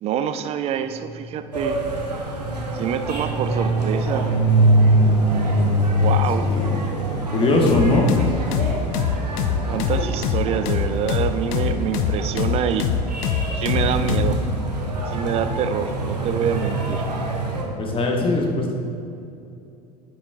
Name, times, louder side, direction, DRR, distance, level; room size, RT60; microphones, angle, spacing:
voice 1, 0.0-1.8 2.7-4.3 6.0-6.5 9.7-12.9 13.5-14.4 15.1-17.1, right 8 dB, 30° right, 10 dB, 0.4 m, -26 dB
sound 1, 0.9-10.9, right 1 dB, 70° left, 1.2 m, -22 dB
sound 2, 1.5-17.6, right 2 dB, 85° right, 0.9 m, -29 dB
voice 2, 7.3-8.1 17.8-18.7, left 2 dB, 25° left, 0 dB, 1.1 m, -20 dB
sound 3, 7.7-14.4, left 9 dB, 50° left, 0.5 m, -23 dB
9.7 x 5.3 x 2.3 m, 2.6 s
figure-of-eight pair, 80°, 20 cm